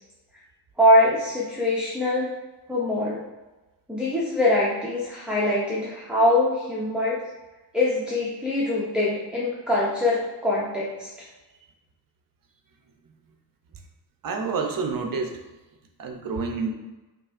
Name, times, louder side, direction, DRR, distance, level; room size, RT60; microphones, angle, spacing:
voice 1, 0.8-2.3 2.7-3.2 3.9-7.2 7.7-11.1, left 1 dB, 5° right, -6 dB, 0.4 m, -23 dB
voice 2, 14.2-15.4 16.0-16.7, right 4 dB, 50° right, 4 dB, 0.5 m, -28 dB
5.5 x 2.5 x 2.4 m, 1.1 s
wide cardioid pair, 160°, 43 cm